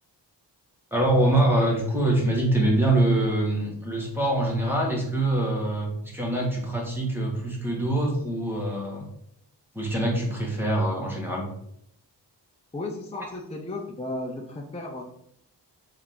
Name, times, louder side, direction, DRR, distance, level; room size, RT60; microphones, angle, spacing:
voice 1, 0.9-9.0 9.7-11.5 13.1-13.3, right 1 dB, 5° right, -2 dB, 1.8 m, -24 dB
voice 2, 12.7-15.0, left 2 dB, 15° left, 1 dB, 0.6 m, -34 dB
7.0 x 3.6 x 3.8 m, 0.73 s
wide cardioid pair, 130°, 43 cm